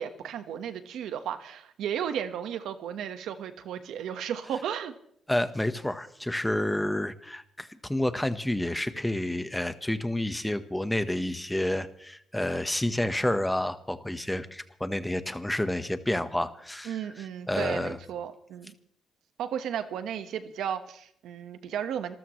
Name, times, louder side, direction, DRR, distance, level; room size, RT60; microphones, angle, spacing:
voice 1, 0.0-4.9 16.8-18.7 19.4-22.1, right 9 dB, 80° right, 9 dB, 1.4 m, -34 dB
voice 2, 5.3-17.0 17.5-18.0, left 1 dB, 10° left, 10 dB, 1.2 m, -29 dB
27.0 x 14.0 x 3.2 m, 0.68 s
cardioid pair, 90°, 0 cm